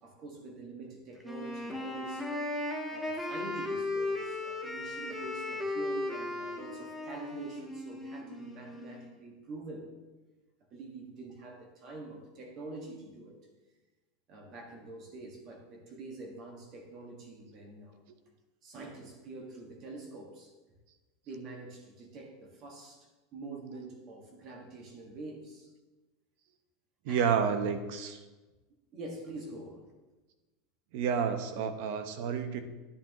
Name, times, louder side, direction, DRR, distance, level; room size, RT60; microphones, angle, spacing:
voice 1, 0.0-2.3 2.9-9.8 10.7-13.4 14.3-18.0 18.6-20.5 21.2-25.7 27.1-27.4 28.9-29.9, right 2 dB, 35° right, 1 dB, 1.6 m, -45 dB
Wind instrument woodwind instrument, 1.2-9.1, left 2 dB, ahead, 1.0 m, -36 dB
voice 2, 27.0-28.2 30.9-32.6, right 7 dB, 60° right, 9 dB, 0.9 m, -30 dB
11.0 x 10.5 x 3.0 m, 1.2 s
supercardioid pair, 165°, 0 cm